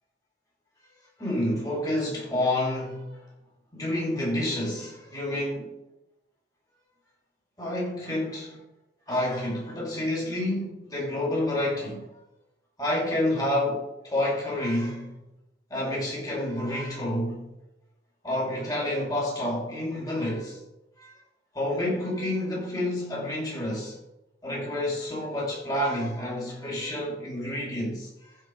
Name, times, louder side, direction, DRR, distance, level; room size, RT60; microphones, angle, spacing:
voice 1, 1.2-3.3 3.7-5.8 7.6-8.6 9.1-12.1 12.8-15.2 15.7-17.5 18.2-20.6 21.0-21.2 21.5-24.0 24.4-28.4, left 1 dB, 20° left, 5.2 m, -29 dB
15.0 x 6.3 x 5.3 m
head